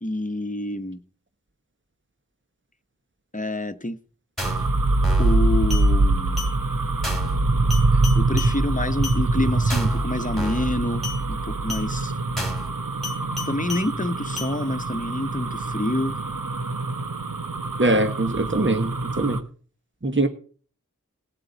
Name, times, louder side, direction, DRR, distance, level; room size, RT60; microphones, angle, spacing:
voice 1, 0.0-1.0 3.3-4.0 5.2-6.4 7.9-12.2 13.5-16.2, left 1 dB, 25° left, 1.0 m, -28 dB
sound 1, 4.4-4.7 5.0-5.3 5.7-5.9 6.4-6.5 7.0-7.3 7.7-8.5 9.0-9.2 9.7-10.0 10.4-10.7 11.0-11.2 11.7-11.9 12.4-12.7 13.0-13.9 14.4-14.5, left 2 dB, ahead, 3.3 m, -32 dB
sound 2, 4.4-19.4, right 2 dB, 85° right, 1.0 m, -24 dB
voice 2, 17.8-19.4 20.0-20.3, right 2 dB, 35° right, 1.3 m, -22 dB
19.0 x 7.7 x 4.0 m
wide cardioid pair, 40°, 32 cm